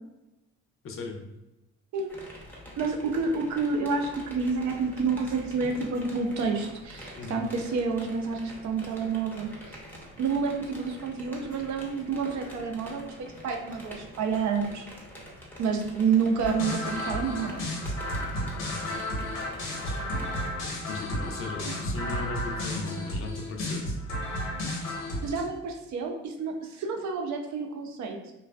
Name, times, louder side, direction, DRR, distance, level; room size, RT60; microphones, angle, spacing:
voice 1, 0.8-1.2 7.2-7.4 18.6-19.0 20.9-23.8, left 3 dB, 45° left, 2 dB, 0.5 m, -37 dB
sound 1, 2.1-20.5, equal, 5° left, 0.6 m, -46 dB
voice 2, 2.8-9.8 10.2-14.9 15.6-17.6 21.7-21.8 25.2-28.3, right 5 dB, 70° right, 3 dB, 0.5 m, -29 dB
sound 2, 16.4-25.4, left 1 dB, 85° left, 0.9 m, -32 dB
2.4 x 2.3 x 2.2 m, 0.96 s
cardioid pair, 90°, 30 cm